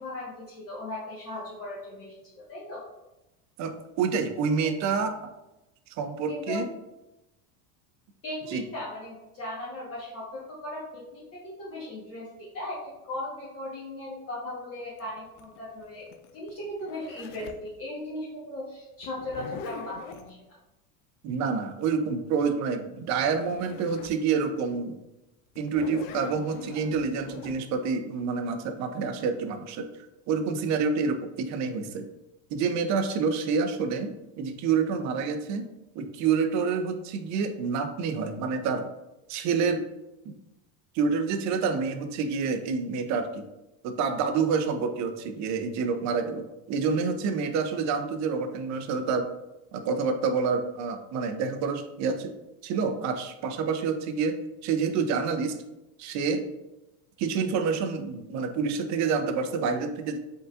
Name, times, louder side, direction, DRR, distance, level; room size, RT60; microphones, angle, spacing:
voice 1, 0.0-2.8 4.6-4.7 6.3-6.6 8.2-20.6, left 1 dB, 35° left, -8 dB, 1.3 m, -38 dB
voice 2, 3.6-5.2 6.0-6.6 8.5-8.6 21.2-25.0 25.6-29.9 30.3-32.1 32.5-34.1 34.4-35.6 35.9-38.8 39.3-39.8 40.3-40.4 40.9-43.4 43.8-49.3 49.7-52.3 52.6-55.6 56.0-56.4 57.2-60.2, right 5 dB, 45° right, 8 dB, 0.5 m, -28 dB
Zipper (clothing), 15.0-17.7 19.0-20.3 22.9-23.0 23.2-24.2 24.7-24.8 25.6-27.6, left 5 dB, 70° left, 0.6 m, -42 dB
5.1 x 3.8 x 2.4 m, 0.97 s
supercardioid pair, 130°, 40 cm